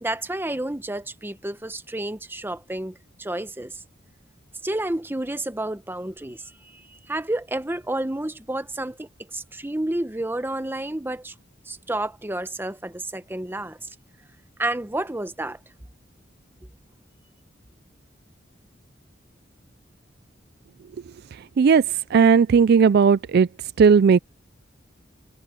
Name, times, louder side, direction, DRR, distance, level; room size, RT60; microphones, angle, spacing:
voice 1, 0.0-3.8 4.6-11.3 11.7-13.9 14.6-15.6, right 1 dB, 10° right, 0.9 m, -30 dB
voice 2, 22.1-23.5 23.8-24.2, right 6 dB, 55° right, 0.4 m, -15 dB
head